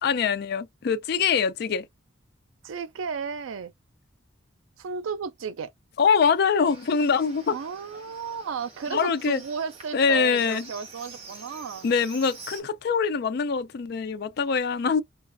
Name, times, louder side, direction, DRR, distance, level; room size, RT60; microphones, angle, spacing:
voice 1, 0.0-1.9 6.0-7.6 8.9-9.4 9.9-10.6 11.8-15.0, left 6 dB, 50° left, 0.3 m, -24 dB
voice 2, 2.6-3.7 4.8-5.7 7.5-11.9, right 5 dB, 80° right, 0.4 m, -33 dB
Livestock farm animals working animals, 6.6-12.6, right 3 dB, 30° right, 1.2 m, -46 dB
3.1 x 2.3 x 2.5 m
head